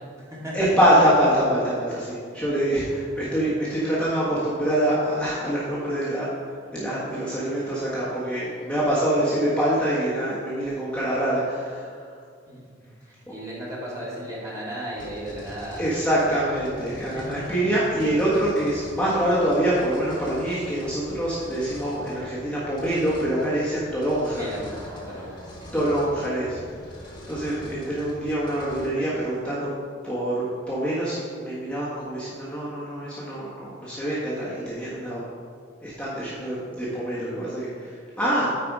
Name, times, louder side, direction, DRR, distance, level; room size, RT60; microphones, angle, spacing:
voice 1, 0.0-0.7 12.5-15.9 16.3-16.4 17.0-17.6 24.3-25.7, right 1 dB, 15° right, -6 dB, 2.1 m, -36 dB
voice 2, 0.5-12.1 15.8-24.5 25.7-26.6 27.0-29.7 30.0-35.2 35.8-38.5, right 1 dB, 5° left, -9 dB, 1.4 m, -25 dB
sound 1, 14.9-28.9, left 1 dB, 25° left, 1.6 m, -43 dB
9.1 x 4.8 x 4.8 m, 2.1 s
head